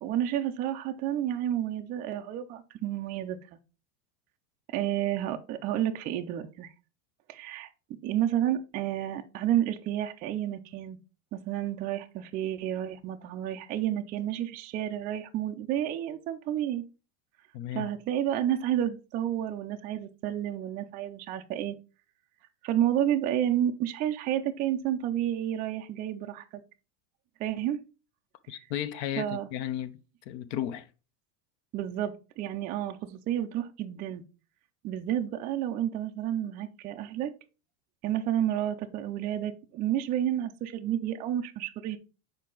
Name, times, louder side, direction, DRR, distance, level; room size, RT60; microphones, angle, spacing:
voice 1, 0.0-3.6 4.7-6.7 7.3-7.7 8.0-11.0 11.3-16.8 17.7-21.8 22.6-26.4 27.4-27.8 29.2-29.5 31.7-34.2 34.8-37.3 38.0-42.0, right 11 dB, 25° right, 0.3 m, -30 dB
voice 2, 17.5-17.9 28.5-30.0 30.3-30.9, left 11 dB, 55° left, 0.6 m, -34 dB
6.5 x 4.7 x 3.8 m
supercardioid pair, 145°, 41 cm